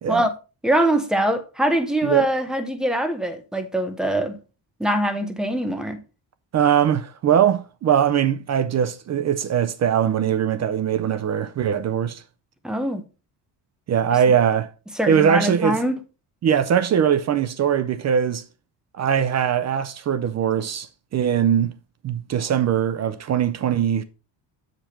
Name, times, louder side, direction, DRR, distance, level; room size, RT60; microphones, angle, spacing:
voice 1, 0.6-4.3 4.8-6.0 12.6-13.0 15.0-16.0, right 1 dB, ahead, 0.8 m, -23 dB
voice 2, 6.5-12.2 13.9-14.7 15.1-15.8 16.4-18.4 19.0-21.8 22.0-24.0, right 8 dB, 40° right, 0.5 m, -21 dB
7.4 x 5.1 x 4.2 m
cardioid pair, 160°, 41 cm